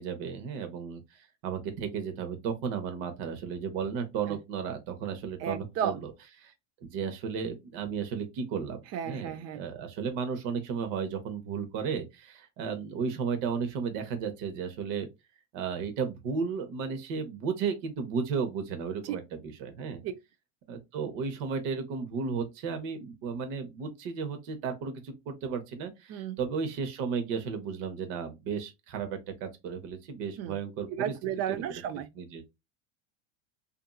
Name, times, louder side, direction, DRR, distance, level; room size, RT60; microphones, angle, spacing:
voice 1, 0.0-6.1 6.4-6.5 6.8-8.8 9.0-15.1 15.5-20.0 20.7-31.1 32.2-32.4, right 6 dB, 60° right, 0.9 m, -34 dB
voice 2, 5.4-6.0 8.9-9.6 19.1-19.2 20.0-20.1 26.1-26.4 30.4-30.6 30.9-32.1, right 9 dB, 45° right, 0.5 m, -33 dB
2.7 x 2.5 x 2.3 m
hypercardioid pair, 95°, 37 cm